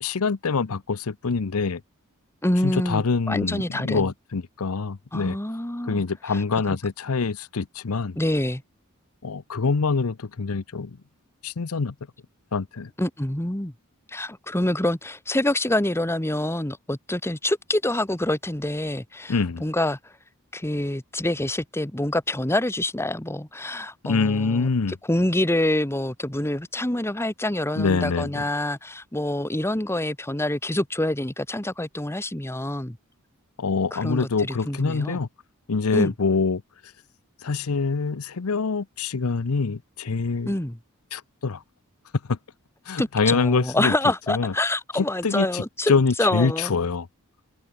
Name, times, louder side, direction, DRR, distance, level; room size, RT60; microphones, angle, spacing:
voice 1, 0.0-1.8 2.6-5.4 5.9-8.2 9.2-11.0 11.4-11.9 12.5-12.9 19.3-19.6 24.0-25.0 27.8-28.4 33.6-35.3 35.7-36.6 37.4-40.5 41.1-41.6 42.3-42.4 42.9-43.9 44.3-44.5 45.0-47.1, left 4 dB, 80° left, 0.7 m, -25 dB
voice 2, 2.4-4.1 5.1-6.0 6.3-6.4 6.7-6.8 8.2-8.6 13.0-13.7 14.1-20.1 20.5-24.7 25.1-33.0 33.9-35.2 35.9-36.1 40.5-40.8 43.0-46.7, left 1 dB, 10° left, 1.5 m, -26 dB
head